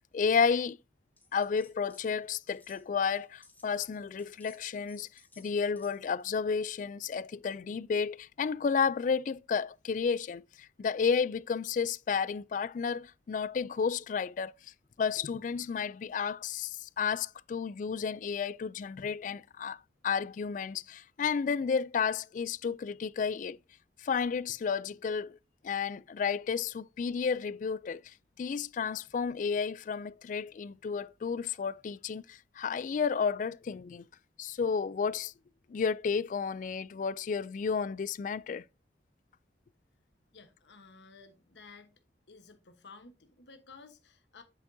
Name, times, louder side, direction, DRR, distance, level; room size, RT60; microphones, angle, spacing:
voice 1, 0.1-0.8 1.3-5.1 5.4-14.5 15.0-19.8 20.0-23.6 24.0-25.4 25.6-34.0 34.4-35.3 35.7-38.6, left 6 dB, 45° left, 0.3 m, -32 dB
sound 1, 1.2-2.1 2.3-6.2, left 3 dB, 10° left, 1.7 m, -61 dB
voice 2, 40.3-41.9 42.3-44.4, left 4 dB, 80° left, 1.2 m, -54 dB
8.0 x 7.0 x 2.7 m
head